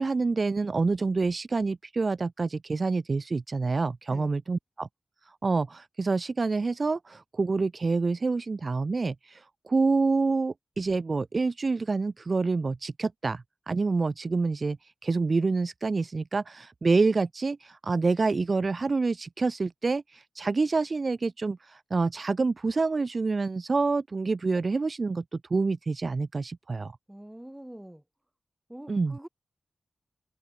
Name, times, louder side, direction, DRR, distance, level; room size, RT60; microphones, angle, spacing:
voice 1, 0.0-4.9 5.3-25.2 25.5-26.9 28.9-29.2, right 3 dB, 55° right, 0.3 m, -27 dB
voice 2, 27.1-28.0 28.7-29.3, right 1 dB, 10° right, 3.1 m, -45 dB
open air
cardioid pair, 45°, 0 cm